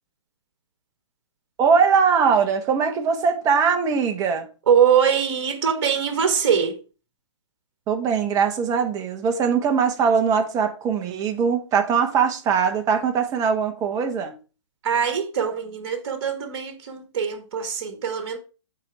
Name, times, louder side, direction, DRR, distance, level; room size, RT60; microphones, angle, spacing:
voice 1, 1.6-4.5 7.9-14.4, right 6 dB, 20° right, 1.3 m, -21 dB
voice 2, 4.7-6.8 14.8-18.4, right 7 dB, 55° right, 1.8 m, -22 dB
8.4 x 4.6 x 4.8 m
hypercardioid pair, 130°, 15 cm